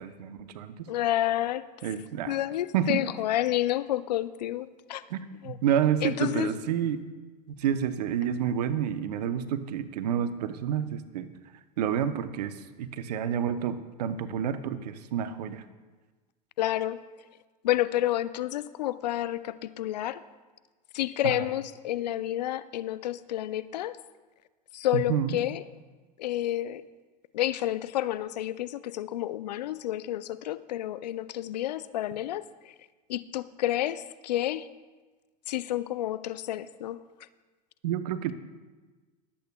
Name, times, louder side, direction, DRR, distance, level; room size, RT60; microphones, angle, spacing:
voice 1, 0.0-0.8 1.8-2.3 2.7-3.0 5.1-7.0 7.5-11.3 11.8-15.6 21.2-21.5 24.9-25.4 37.8-38.3, right 9 dB, 75° right, 12 dB, 0.7 m, -29 dB
voice 2, 0.9-1.6 2.3-5.1 5.4-5.6 6.0-6.5 16.6-17.0 17.6-20.2 20.9-24.0 24.7-25.6 26.2-26.8 27.3-32.7 33.1-34.7 35.5-37.0, left 13 dB, 80° left, 16 dB, 0.5 m, -30 dB
22.0 x 8.6 x 2.3 m, 1.3 s
hypercardioid pair, 95°, 21 cm